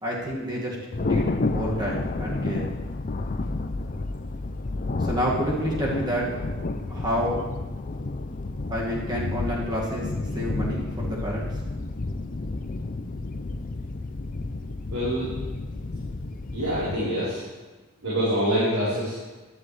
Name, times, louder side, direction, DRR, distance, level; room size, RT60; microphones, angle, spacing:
voice 1, 0.0-2.7 5.0-6.4 6.9-7.4 8.7-11.5, equal, 20° right, -4 dB, 2.1 m, -29 dB
Thunder, 0.9-16.9, left 2 dB, 40° left, 0.5 m, -31 dB
voice 2, 14.9-15.3 16.5-17.4 18.0-19.2, equal, 80° right, -10 dB, 4.2 m, -25 dB
15.0 x 11.0 x 3.3 m, 1.2 s
head